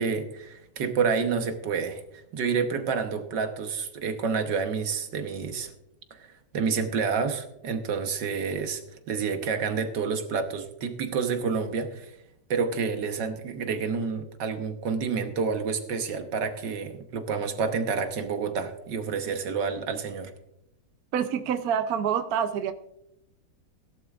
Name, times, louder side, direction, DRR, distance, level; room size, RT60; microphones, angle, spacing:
voice 1, 0.0-5.7 6.1-8.8 9.1-12.1 12.5-20.3, right 5 dB, 85° right, 6 dB, 1.8 m, -29 dB
voice 2, 21.1-22.7, right 8 dB, 65° right, 9 dB, 1.1 m, -27 dB
17.5 x 11.5 x 2.4 m, 0.82 s
omnidirectional pair, 1.8 m